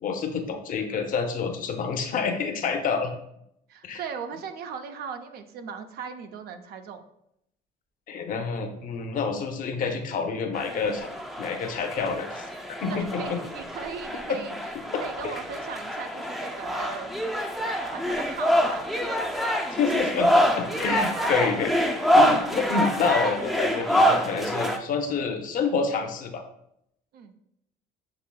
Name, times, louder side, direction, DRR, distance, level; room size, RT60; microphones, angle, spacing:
voice 1, 0.0-3.1 3.8-4.0 8.1-11.1 11.4-12.5 12.8-13.4 14.3-14.4 14.9-15.3 19.7-21.7 22.1-26.4, left 5 dB, 55° left, 5 dB, 0.6 m, -28 dB
voice 2, 3.7-7.0 12.9-14.7 15.0-17.1 17.7-18.9 27.1-27.3, right 6 dB, 70° right, 8 dB, 0.5 m, -38 dB
sound 1, 10.5-24.8, equal, ahead, 0.4 m, -26 dB
6.7 x 2.7 x 2.2 m, 0.76 s
cardioid pair, 110°, 17 cm